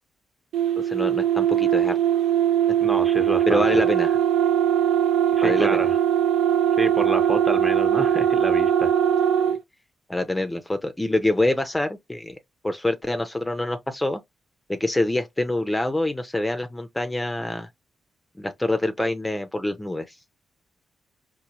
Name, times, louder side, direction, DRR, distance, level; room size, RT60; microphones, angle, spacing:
sound 1, 0.5-9.6, right 9 dB, 80° right, 0.4 m, -21 dB
voice 1, 0.8-1.9 3.5-4.1 5.4-5.8 10.1-12.4 12.6-14.2 14.7-17.7 18.4-20.2, left 1 dB, 15° left, 0.5 m, -25 dB
voice 2, 2.8-3.8 5.4-6.0 6.8-8.9, right 2 dB, 25° right, 0.8 m, -28 dB
4.2 x 2.2 x 2.9 m
supercardioid pair, 55°, 0 cm